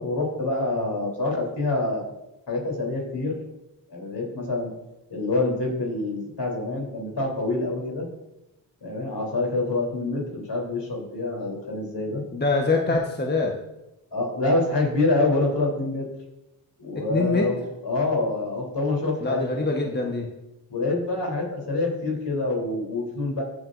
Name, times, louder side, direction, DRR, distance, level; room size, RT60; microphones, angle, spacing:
voice 1, 0.0-2.1 2.5-3.4 3.9-4.7 5.1-8.1 8.8-12.2 14.1-16.1 16.8-19.6 20.7-23.4, left 2 dB, 60° left, -1 dB, 3.5 m, -26 dB
voice 2, 12.3-13.6 16.9-17.5 19.2-20.3, left 3 dB, 20° left, 1 dB, 1.2 m, -24 dB
15.0 x 8.1 x 2.6 m, 0.94 s
cardioid pair, 40°, 46 cm